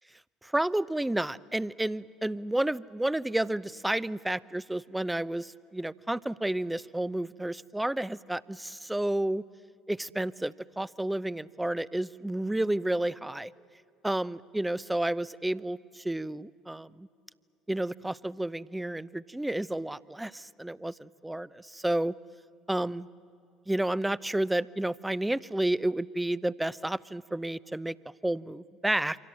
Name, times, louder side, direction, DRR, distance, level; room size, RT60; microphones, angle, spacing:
voice 1, 0.4-9.4 9.9-13.5 14.0-17.1 17.7-22.1 22.7-23.1 23.7-27.9 28.2-29.2, right 1 dB, 10° right, 19 dB, 0.7 m, -31 dB
28.0 x 26.0 x 7.6 m, 2.7 s
hypercardioid pair, 60°, 0 cm